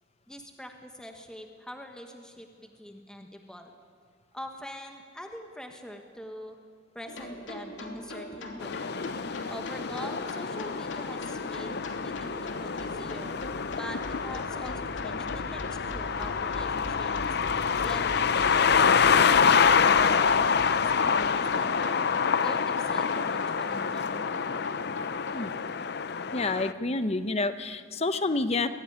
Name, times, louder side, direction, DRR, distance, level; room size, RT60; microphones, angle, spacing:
voice 1, 0.3-3.7 4.3-6.6 6.9-8.9 9.5-11.8 12.0-13.3 13.8-17.4 17.8-22.1 22.4-24.2, equal, 5° left, 3 dB, 1.3 m, -44 dB
sound 1, 7.0-25.3, left 1 dB, 90° left, 3.0 m, -41 dB
sound 2, 8.6-26.7, left 6 dB, 60° left, 0.6 m, -26 dB
voice 2, 26.3-28.7, left 3 dB, 35° left, 11 dB, 0.9 m, -28 dB
22.5 x 16.0 x 9.9 m, 2.1 s
head